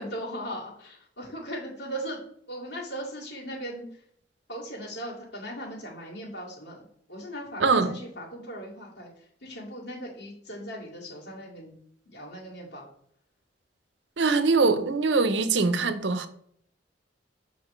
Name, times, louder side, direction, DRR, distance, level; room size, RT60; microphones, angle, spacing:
voice 1, 0.0-2.2 2.5-3.8 4.5-6.8 7.1-9.1 9.4-11.8 12.1-12.9, equal, 80° left, 2.4 m, -38 dB
voice 2, 7.6-8.0 14.2-16.3, right 4 dB, 75° right, 0.7 m, -23 dB
7.3 x 5.8 x 3.2 m
head